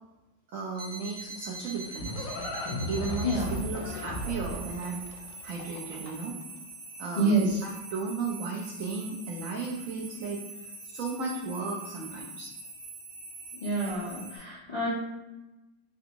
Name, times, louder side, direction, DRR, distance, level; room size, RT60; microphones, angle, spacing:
voice 1, 0.5-2.3 2.9-6.4 7.0-10.4 10.8-12.5, right 4 dB, 85° right, -2 dB, 0.7 m, -35 dB
sound 1, 0.7-14.4, right 3 dB, 65° right, 1.4 m, -44 dB
Livestock farm animals working animals, 1.4-6.4, left 1 dB, 80° left, 1.3 m, -36 dB
voice 2, 3.2-3.5 7.2-7.6 13.6-14.9, right 2 dB, 60° left, -9 dB, 0.4 m, -27 dB
3.4 x 2.5 x 2.8 m, 1.0 s
omnidirectional pair, 2.0 m